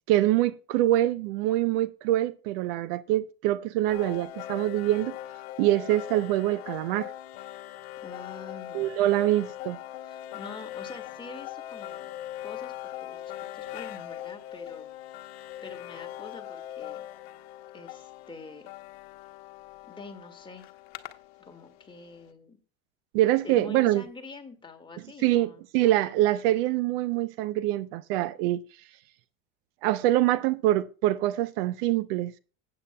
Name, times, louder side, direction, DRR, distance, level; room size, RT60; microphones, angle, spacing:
voice 1, 0.1-5.2 5.6-7.1 8.7-9.8 23.1-24.0 25.2-28.6 29.8-32.3, right 14 dB, 65° right, 0.6 m, -25 dB
sound 1, 3.9-21.9, left 12 dB, 70° left, 1.0 m, -41 dB
voice 2, 8.0-9.3 10.0-12.1 12.4-13.2 13.5-14.9 15.6-17.1 17.7-18.7 19.8-20.7 21.4-22.6 23.4-25.6, left 3 dB, 15° left, 1.8 m, -45 dB
15.5 x 8.8 x 2.2 m
hypercardioid pair, 90°, 31 cm